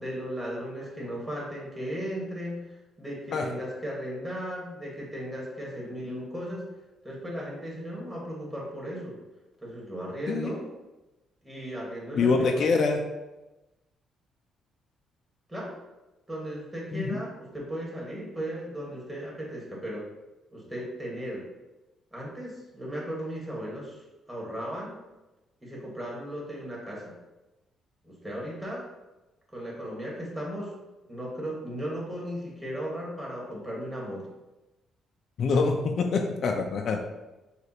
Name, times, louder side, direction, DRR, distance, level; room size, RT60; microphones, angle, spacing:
voice 1, 0.0-2.6 3.0-6.6 7.0-9.2 9.6-10.7 11.4-12.7 15.5-15.8 16.3-20.1 20.5-21.5 22.1-24.0 24.3-25.0 25.6-27.1 28.0-28.9 29.5-30.7 31.1-34.3, equal, 10° right, -4 dB, 1.5 m, -36 dB
voice 2, 10.3-10.6 12.1-13.0 16.9-17.2 35.4-37.0, left 4 dB, 55° left, 3 dB, 0.4 m, -25 dB
6.5 x 2.5 x 2.9 m, 1.0 s
cardioid pair, 115°, 0 cm